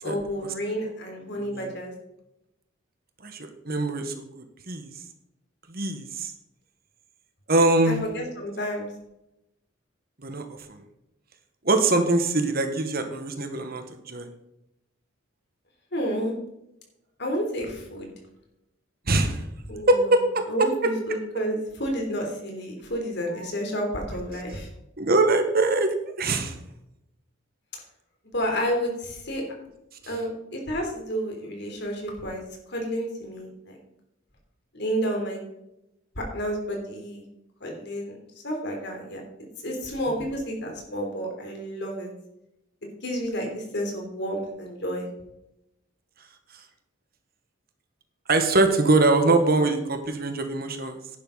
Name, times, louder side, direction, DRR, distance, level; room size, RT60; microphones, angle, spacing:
voice 1, 0.0-1.9 7.9-8.9 15.9-16.4 17.2-18.1 19.7-20.1 20.5-24.7 28.3-29.4 30.1-33.8 34.7-35.4 36.2-37.2 37.6-39.2 39.6-42.1 42.8-45.1, equal, 55° left, 2 dB, 3.5 m, -30 dB
voice 2, 1.4-1.7 3.2-4.9 5.7-6.3 7.5-8.0 10.2-10.8 11.6-14.3 19.1-19.4 19.9-20.7 23.3-23.5 25.0-26.6 48.3-51.0, right 2 dB, 45° right, 6 dB, 1.5 m, -23 dB
11.0 x 11.0 x 4.1 m, 0.85 s
head